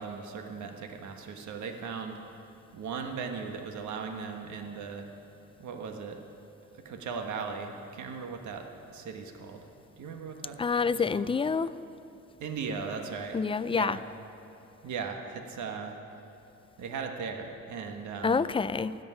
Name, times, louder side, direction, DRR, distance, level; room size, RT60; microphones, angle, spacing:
voice 1, 0.0-2.2 2.7-5.1 5.6-6.2 6.6-9.7 10.0-11.3 12.4-13.4 13.7-14.0 14.8-15.9 16.8-18.5, right 5 dB, 75° right, 4 dB, 1.4 m, -38 dB
voice 2, 10.6-11.7 13.3-14.0 18.2-18.9, left 5 dB, 20° left, 15 dB, 0.3 m, -27 dB
13.5 x 8.1 x 9.8 m, 2.8 s
cardioid pair, 90°, 30 cm